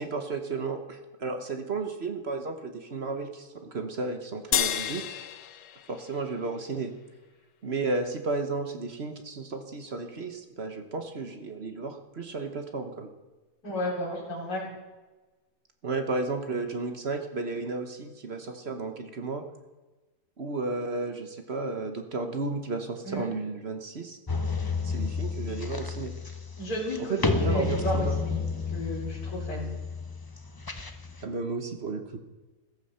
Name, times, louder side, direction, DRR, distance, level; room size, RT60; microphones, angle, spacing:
voice 1, 0.0-5.0 5.9-6.9 7.6-13.1 15.8-19.4 20.4-24.2 24.8-26.1 27.1-28.2 31.2-32.2, right 3 dB, 40° right, 6 dB, 1.2 m, -33 dB
sound 1, 4.5-7.1, left 10 dB, 85° left, 1.5 m, -32 dB
voice 2, 13.6-14.7 23.0-23.3 26.6-28.4 28.7-29.7, equal, 60° left, -6 dB, 5.0 m, -32 dB
sound 2, 24.3-31.2, left 4 dB, 30° left, 0.4 m, -31 dB
14.5 x 14.5 x 5.6 m, 1.2 s
omnidirectional pair, 1.8 m